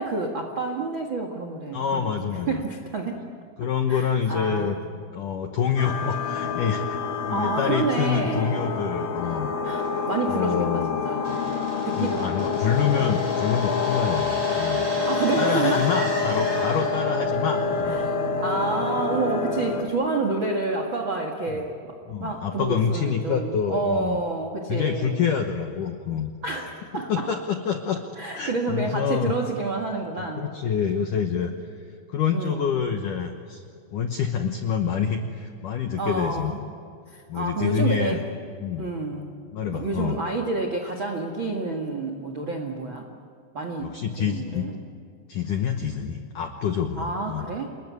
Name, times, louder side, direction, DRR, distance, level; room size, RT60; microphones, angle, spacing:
voice 1, 0.0-3.2 3.9-4.8 7.3-8.6 9.6-11.5 11.8-12.6 15.1-15.9 17.9-18.1 18.4-25.3 26.4-27.3 28.2-30.5 32.3-32.8 36.0-36.6 37.1-38.2 38.8-39.4 39.7-43.1 43.5-44.8 47.0-47.7, right 3 dB, 85° right, 4 dB, 1.0 m, -29 dB
voice 2, 1.7-2.6 3.6-4.8 5.1-7.0 7.2-10.0 10.3-11.0 12.0-14.9 15.4-18.1 21.5-21.6 22.1-24.2 24.7-26.3 27.1-28.0 28.3-29.3 30.2-31.5 31.8-33.6 33.9-36.5 37.3-38.2 38.6-38.9 39.5-40.2 43.8-44.7 45.3-47.5, left 7 dB, 80° left, 5 dB, 1.8 m, -27 dB
sound 1, 5.8-19.8, left 5 dB, 60° left, 3.0 m, -27 dB
sound 2, 11.2-17.2, right 2 dB, 45° right, 9.2 m, -37 dB
28.0 x 21.0 x 9.4 m, 2.3 s
omnidirectional pair, 5.5 m